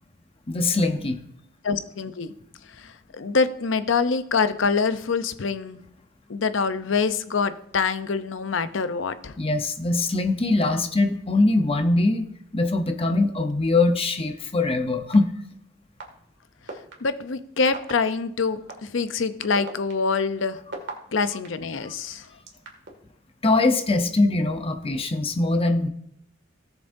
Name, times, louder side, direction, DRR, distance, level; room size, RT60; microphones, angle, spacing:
voice 1, 0.5-1.2 9.4-12.3 12.5-15.3 21.8-21.9 23.4-25.9, left 2 dB, 30° left, 5 dB, 0.8 m, -22 dB
voice 2, 1.6-2.3 2.8-5.8 6.3-9.3 17.0-20.6 21.1-22.3, left 5 dB, 75° left, 12 dB, 0.7 m, -25 dB
sound 1, 15.1-15.2 16.0-16.1 16.7-16.9 17.7-17.9 18.7-18.8 19.4-21.5 22.1-22.9, right 3 dB, 65° right, 2.1 m, -36 dB
17.0 x 7.1 x 2.7 m, 0.73 s
head